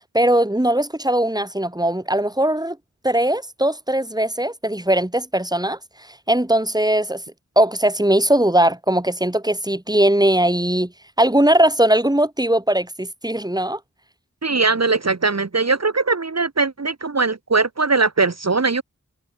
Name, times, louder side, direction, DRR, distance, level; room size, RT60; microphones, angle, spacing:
voice 1, 0.1-2.8 3.0-5.8 6.3-7.2 7.6-10.9 11.2-13.8, right 1 dB, 15° right, 3.1 m, -19 dB
voice 2, 14.4-18.8, right 4 dB, 60° right, 1.5 m, -20 dB
wide cardioid pair, 50°, 30 cm